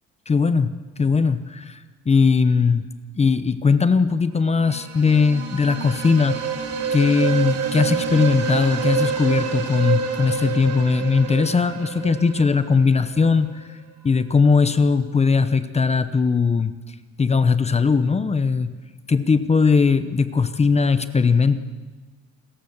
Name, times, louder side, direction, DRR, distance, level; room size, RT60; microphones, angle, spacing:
voice 1, 0.3-0.7 1.0-1.8 2.1-2.9 3.2-6.6 6.9-13.7 14.0-16.7 17.2-18.7 19.1-21.6, left 5 dB, 20° left, 12 dB, 0.8 m, -19 dB
sound 1, 4.5-13.4, right 6 dB, 55° right, 2.7 m, -27 dB
28.5 x 14.5 x 7.2 m, 1.3 s
cardioid pair, 160°, 30 cm